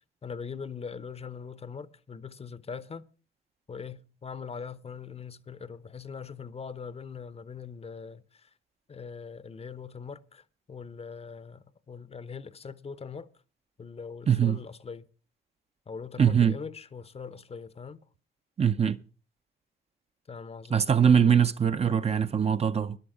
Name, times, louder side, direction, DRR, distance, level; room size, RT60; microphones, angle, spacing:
voice 1, 0.2-3.1 3.7-8.5 8.9-13.3 13.8-15.1 15.9-18.0 20.3-20.8, left 6 dB, 30° left, 0.7 m, -41 dB
voice 2, 14.3-14.6 16.2-16.5 18.6-19.0 20.7-23.0, right 7 dB, 30° right, 0.6 m, -22 dB
13.0 x 10.5 x 5.0 m
cardioid pair, 90°, 20 cm